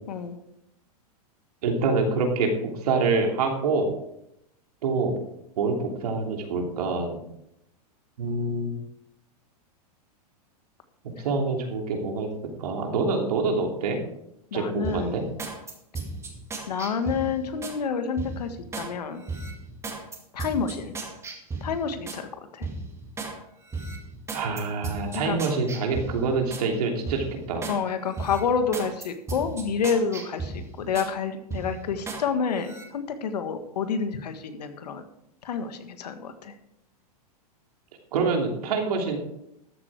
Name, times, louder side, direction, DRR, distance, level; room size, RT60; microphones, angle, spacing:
voice 1, 1.6-2.5 2.8-3.9 4.8-5.1 5.6-7.2 8.2-8.8 11.2-12.3 12.6-14.0 14.5-15.2 24.3-27.7 38.1-39.2, right 4 dB, 75° right, 2 dB, 3.1 m, -26 dB
voice 2, 14.5-15.2 16.7-19.2 20.3-20.9 21.6-22.3 22.5-22.7 25.1-25.4 27.7-35.0 35.4-36.5, left 6 dB, 85° left, 8 dB, 1.7 m, -29 dB
sound 1, 14.8-17.8 18.2-18.9 19.3-22.2 22.6-23.3 23.7-26.7 27.1-27.8 28.1-31.1 31.5-32.2 32.6-32.8, right 3 dB, 15° right, 2.2 m, -36 dB
13.5 x 8.1 x 4.8 m, 0.79 s
hypercardioid pair, 135°, 20 cm